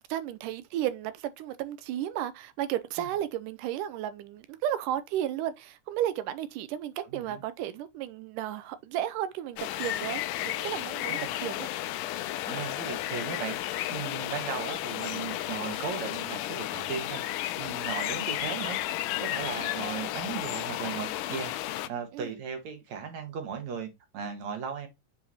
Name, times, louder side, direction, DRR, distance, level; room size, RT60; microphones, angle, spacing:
voice 1, 0.0-11.7 18.0-18.1 19.6-19.7 22.1-22.3, right 11 dB, 90° right, 2.2 m, -33 dB
voice 2, 7.0-7.4 11.1-11.3 12.5-13.6 13.9-18.8 19.2-24.9, right 6 dB, 65° right, 2.5 m, -37 dB
sound 1, 9.6-21.9, left 14 dB, 80° left, 2.2 m, -33 dB
7.4 x 5.0 x 2.9 m
omnidirectional pair, 3.7 m